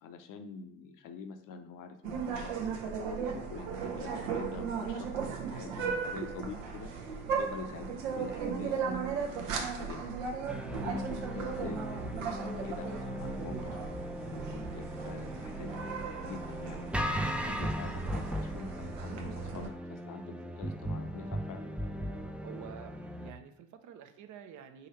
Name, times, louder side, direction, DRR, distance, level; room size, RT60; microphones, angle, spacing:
voice 1, 0.0-6.9 7.4-10.1 10.7-13.8 14.2-15.7 16.2-21.7, left 5 dB, 55° left, 7 dB, 0.7 m, -46 dB
sound 1, 2.0-19.7, right 6 dB, 80° right, 0.8 m, -37 dB
sound 2, 10.5-23.3, equal, 5° right, 0.4 m, -38 dB
voice 2, 22.4-24.9, right 9 dB, 50° right, 8 dB, 0.7 m, -49 dB
3.8 x 2.6 x 4.3 m, 0.76 s
hypercardioid pair, 55°, 38 cm